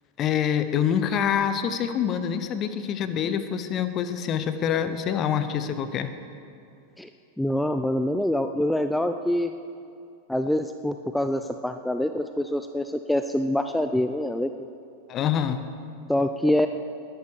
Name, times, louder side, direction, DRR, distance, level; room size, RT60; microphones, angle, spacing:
voice 1, 0.2-6.1 15.1-15.6, left 8 dB, 30° left, 11 dB, 0.9 m, -26 dB
voice 2, 7.4-9.5 10.3-14.7 16.1-16.7, left 1 dB, 5° left, 8 dB, 0.5 m, -25 dB
20.0 x 11.5 x 4.8 m, 2.5 s
figure-of-eight pair, 90°, 0 cm